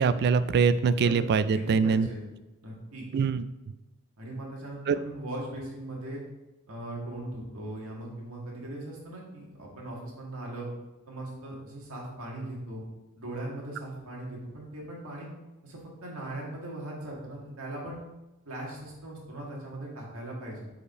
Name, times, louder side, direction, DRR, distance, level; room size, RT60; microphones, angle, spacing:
voice 1, 0.0-2.1 3.1-3.4 4.9-5.0, right 5 dB, 50° right, 14 dB, 0.3 m, -23 dB
voice 2, 1.0-2.2 2.6-3.1 4.2-6.2 6.7-10.7 11.1-12.8 13.2-15.3 15.6-18.0 18.5-20.7, right 1 dB, 65° right, -3 dB, 1.9 m, -39 dB
4.9 x 4.9 x 4.9 m, 1.0 s
head